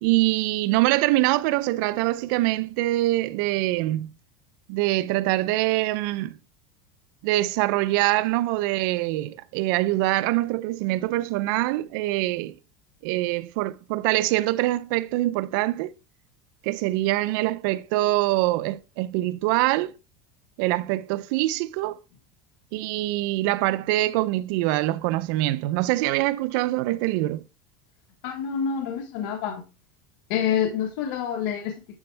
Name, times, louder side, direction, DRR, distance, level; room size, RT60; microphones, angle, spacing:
voice 1, 0.0-4.1 4.7-6.4 7.2-12.6 13.0-15.9 16.6-19.9 20.6-22.0 22.7-27.4, right 17 dB, 65° right, 0.5 m, -24 dB
voice 2, 28.2-29.6 30.3-31.7, left 8 dB, 70° left, 1.3 m, -27 dB
11.0 x 4.3 x 3.3 m
supercardioid pair, 130°, 12 cm